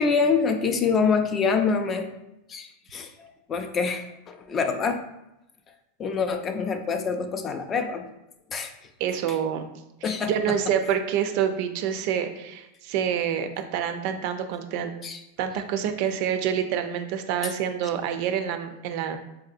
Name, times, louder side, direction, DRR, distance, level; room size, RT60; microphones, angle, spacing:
voice 1, 0.0-2.1 2.5-5.0 6.0-8.0 8.5-8.7 9.3-9.4 10.0-10.6 15.0-15.2 17.4-17.5, left 5 dB, 25° left, 6 dB, 0.3 m, -26 dB
voice 2, 9.0-9.7 10.1-14.9 15.4-19.2, right 8 dB, 55° right, 8 dB, 0.4 m, -27 dB
4.0 x 2.7 x 2.5 m, 0.91 s
supercardioid pair, 140°, 0 cm